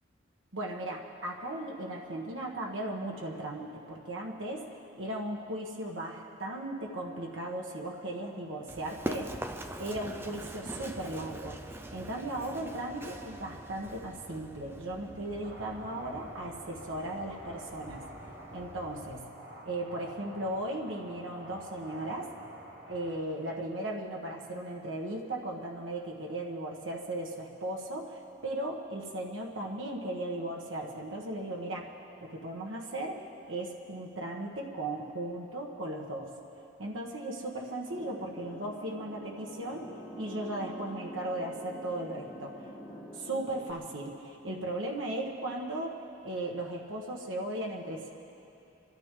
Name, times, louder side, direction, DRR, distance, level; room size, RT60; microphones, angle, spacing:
voice 1, 0.5-4.6 5.0-9.3 9.8-18.1 18.5-19.2 19.6-22.3 22.9-31.9 32.2-36.3 36.8-39.9 40.2-42.7 43.1-48.1, right 1 dB, 90° right, -1 dB, 1.5 m, -37 dB
Run, 8.7-19.2, right 1 dB, 10° right, 0.5 m, -44 dB
sound 1, 15.4-23.2, equal, 55° right, 1.7 m, -49 dB
sound 2, 37.9-43.7, equal, 15° left, 1.2 m, -46 dB
26.5 x 13.0 x 3.8 m, 2.9 s
head